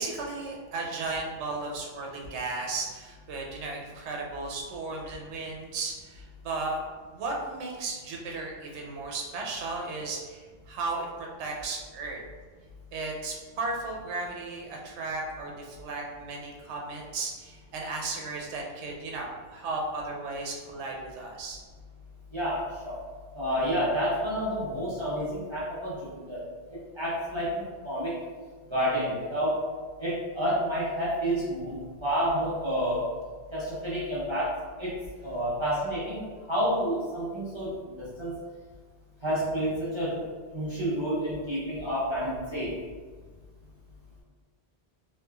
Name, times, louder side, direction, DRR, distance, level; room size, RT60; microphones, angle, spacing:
voice 1, 0.0-6.8 7.1-11.1 11.4-12.2 12.9-21.6, right 3 dB, 80° right, 0 dB, 0.9 m, -35 dB
voice 2, 22.3-23.0 23.3-26.0 26.3-26.4 27.0-28.2 28.7-29.6 30.0-33.0 33.5-34.5 34.8-34.9 35.2-36.2 36.5-38.4 39.2-40.2 40.5-42.8, equal, 30° right, -10 dB, 0.8 m, -29 dB
3.1 x 2.9 x 2.3 m, 1.5 s
omnidirectional pair, 1.1 m